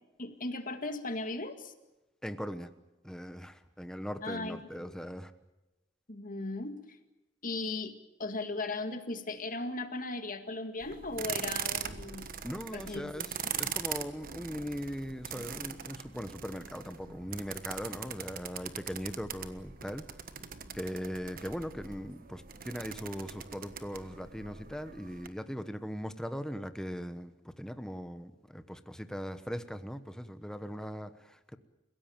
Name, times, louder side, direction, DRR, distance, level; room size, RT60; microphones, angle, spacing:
voice 1, 0.2-1.7 4.2-4.9 6.1-6.9 7.4-12.4 12.7-13.3 13.6-13.8, left 2 dB, 50° left, 8 dB, 2.1 m, -37 dB
voice 2, 2.2-2.7 3.0-5.3 12.4-20.1 20.7-31.6, equal, 5° left, 10 dB, 1.1 m, -40 dB
sound 1, 10.8-25.3, right 8 dB, 50° right, 1.3 m, -41 dB
29.5 x 16.5 x 8.9 m, 1.0 s
head